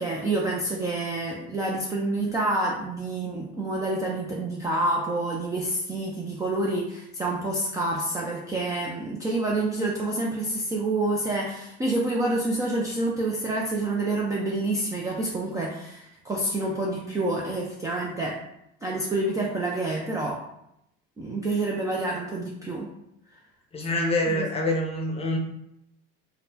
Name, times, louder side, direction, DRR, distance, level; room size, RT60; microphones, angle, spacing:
voice 1, 0.0-18.4 18.8-20.5 21.2-22.9 24.3-24.4, right 2 dB, 10° right, -3 dB, 0.3 m, -28 dB
voice 2, 23.7-25.4, left 1 dB, 20° left, 0 dB, 0.6 m, -26 dB
4.0 x 2.1 x 2.7 m, 0.81 s
supercardioid pair, 115°, 29 cm